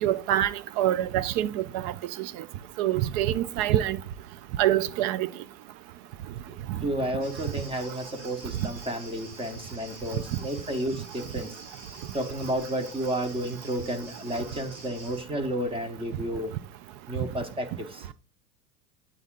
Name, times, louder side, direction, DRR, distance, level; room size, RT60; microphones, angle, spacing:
voice 1, 0.0-1.9 2.8-4.0 4.6-5.3, right 13 dB, 40° right, 0.4 m, -25 dB
voice 2, 6.8-11.6 12.1-16.5 17.1-18.1, right 1 dB, 10° right, 1.0 m, -31 dB
sound 1, 7.2-15.2, right 2 dB, 85° right, 3.7 m, -47 dB
8.6 x 4.1 x 3.7 m
hypercardioid pair, 95°, 44 cm